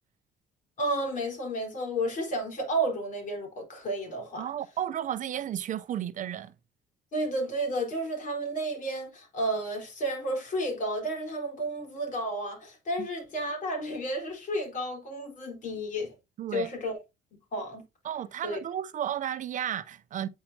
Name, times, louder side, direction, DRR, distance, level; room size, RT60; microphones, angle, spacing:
voice 1, 0.8-4.5 7.1-16.1 16.5-17.0 17.5-17.8 18.4-18.6, right 1 dB, 50° left, 4.3 m, -32 dB
voice 2, 4.4-6.5 13.0-13.1 16.4-16.7 18.0-20.3, right 10 dB, 50° right, 0.6 m, -33 dB
8.8 x 5.6 x 2.8 m
cardioid pair, 110°, 17 cm